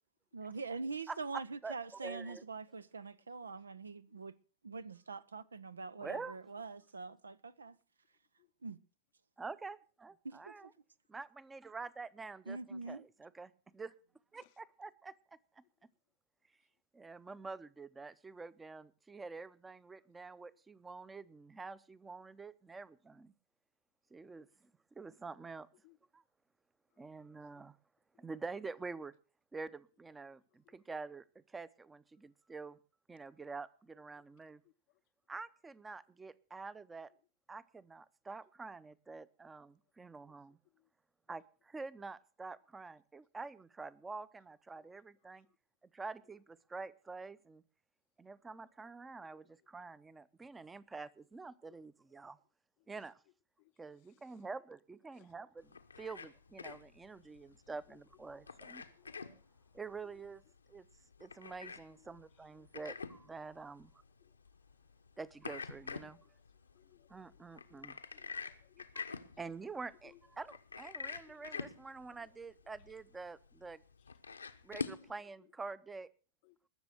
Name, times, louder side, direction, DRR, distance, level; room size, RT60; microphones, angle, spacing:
voice 1, 0.3-4.3 4.6-7.8 8.6-8.8 10.2-10.7 12.5-13.0, right 4 dB, 75° right, 0.6 m, -44 dB
voice 2, 1.1-2.4 6.0-6.4 9.4-10.7 11.1-13.9 14.3-15.2 15.6-15.7 16.9-23.3 24.1-24.5 24.9-25.7 26.1-26.2 27.0-27.8 28.2-29.1 29.5-32.8 33.1-34.6 35.3-37.1 37.5-40.6 41.3-45.5 45.9-47.6 48.2-52.4 52.9-53.2 53.8-58.8 59.1-59.4 59.7-60.4 60.7-60.9 61.2-63.9 65.2-66.2 67.1-68.0 68.9-73.8 74.6-76.1, right 4 dB, 15° right, 0.8 m, -47 dB
sound 1, 55.6-75.1, left 5 dB, 75° left, 0.9 m, -47 dB
voice 3, 62.6-63.0 64.2-64.3 66.0-66.2 66.7-67.8 68.1-68.8 70.0-70.2 71.3-71.6 72.2-72.3 75.0-75.1 76.4-76.6, left 21 dB, 45° left, 0.6 m, -67 dB
20.5 x 7.0 x 6.4 m
figure-of-eight pair, 90°, 0 cm